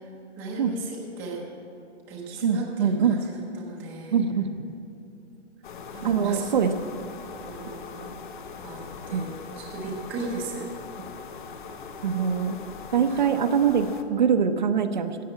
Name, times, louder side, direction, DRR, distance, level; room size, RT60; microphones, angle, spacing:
voice 1, 0.0-1.4 2.1-4.2 5.9-6.4 7.4-8.1 8.6-9.3 9.6-10.7 13.1-13.2, right 3 dB, 5° right, -3 dB, 0.7 m, -36 dB
voice 2, 2.4-3.2 4.1-4.5 6.0-6.7 9.1-9.2 12.0-12.6 12.9-15.2, right 7 dB, 40° right, 7 dB, 0.7 m, -23 dB
sound 1, 5.6-14.0, left 5 dB, 45° left, 0.9 m, -41 dB
14.0 x 7.7 x 8.7 m, 2.8 s
hypercardioid pair, 175°, 35 cm